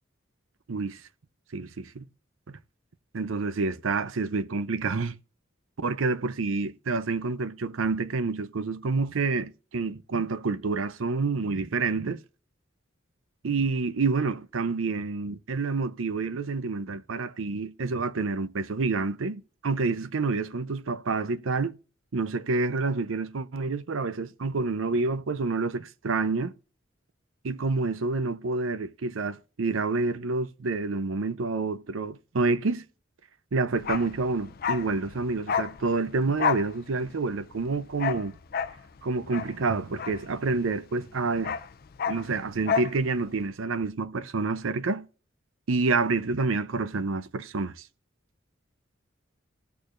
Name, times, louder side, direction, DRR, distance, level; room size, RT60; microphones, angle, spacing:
voice 1, 0.7-1.0 1.5-2.1 2.5-2.6 3.1-5.2 5.8-12.2 13.4-21.8 22.1-26.5 27.4-32.8 33.5-38.4 39.0-41.6 42.1-45.1 45.7-47.8, right 3 dB, 90° right, 0.6 m, -28 dB
Bark, 33.8-40.8 41.1-43.0 43.2-43.4, left 7 dB, 50° left, 0.5 m, -31 dB
16.5 x 6.6 x 2.5 m
head